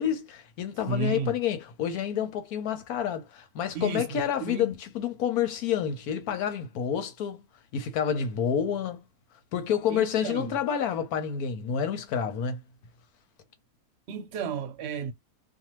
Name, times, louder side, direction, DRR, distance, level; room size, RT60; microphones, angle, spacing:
voice 1, 0.0-7.4 7.7-9.1 9.5-12.6, left 8 dB, 90° left, 1.3 m, -29 dB
voice 2, 0.9-1.4 3.7-4.7 9.9-10.5 14.1-15.1, right 4 dB, 60° right, 0.7 m, -32 dB
2.7 x 2.3 x 3.0 m
omnidirectional pair, 1.5 m